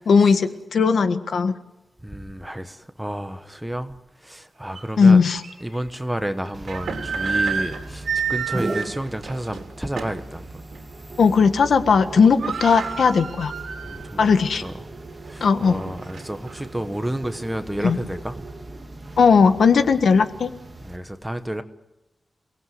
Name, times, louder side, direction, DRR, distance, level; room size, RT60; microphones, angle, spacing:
voice 1, 0.1-1.5 5.0-5.4 11.2-13.5 14.2-14.6 15.4-15.8 17.8-18.0 19.2-20.5, left 5 dB, 70° left, 9 dB, 1.5 m, -17 dB
voice 2, 2.0-5.2 5.6-10.4 13.8-14.3 14.6-14.7 15.2-18.4 20.8-21.6, right 1 dB, 5° right, 8 dB, 1.2 m, -31 dB
sound 1, 4.8-4.9 5.4-5.5 6.5-10.3 10.7-10.9 11.2-11.7 11.9-12.0 12.2-14.2 14.6-14.7 15.3-16.6, right 5 dB, 85° right, 3.2 m, -30 dB
sound 2, 6.5-21.0, right 2 dB, 25° right, 2.4 m, -38 dB
28.5 x 19.0 x 7.9 m, 1.0 s
wide cardioid pair, 170°, 0 cm